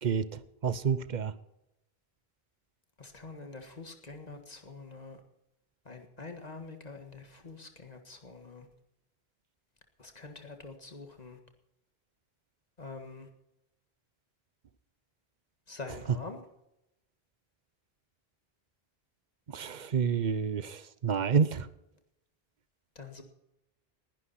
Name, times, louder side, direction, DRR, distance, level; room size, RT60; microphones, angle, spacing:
voice 1, 0.0-1.3 19.5-21.7, right 6 dB, 50° right, 16 dB, 0.8 m, -29 dB
voice 2, 3.0-5.2 5.9-8.7 10.0-11.4 12.8-13.3 15.7-16.4 23.0-23.2, left 3 dB, 40° left, 6 dB, 1.8 m, -45 dB
19.5 x 11.5 x 4.3 m, 0.87 s
omnidirectional pair, 1.0 m